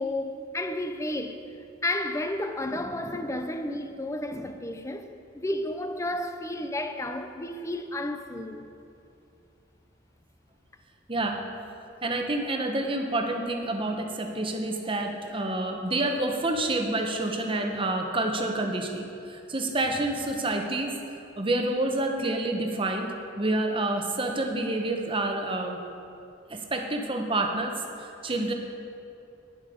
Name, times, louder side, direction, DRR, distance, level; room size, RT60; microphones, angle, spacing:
voice 1, 0.0-1.4 1.8-5.1 5.3-8.7, left 1 dB, 15° left, 0.5 m, -32 dB
voice 2, 12.0-20.9 21.4-25.8 26.5-28.5, right 2 dB, 25° right, 1.0 m, -28 dB
11.5 x 10.5 x 5.1 m
head